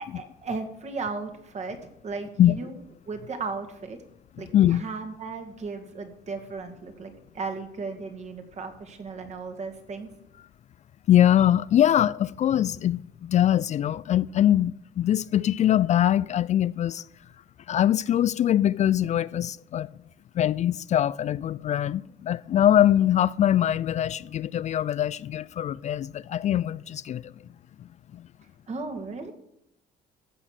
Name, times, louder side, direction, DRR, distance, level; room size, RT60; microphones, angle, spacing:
voice 1, 0.2-2.7 3.1-4.0 4.4-10.1 28.7-29.3, right 4 dB, 40° right, 2.3 m, -35 dB
voice 2, 4.5-4.8 11.1-17.0 17.7-19.9 20.3-27.3 28.1-28.2, left 11 dB, 45° left, 0.4 m, -23 dB
14.5 x 6.3 x 7.5 m
cardioid pair, 110°, 17 cm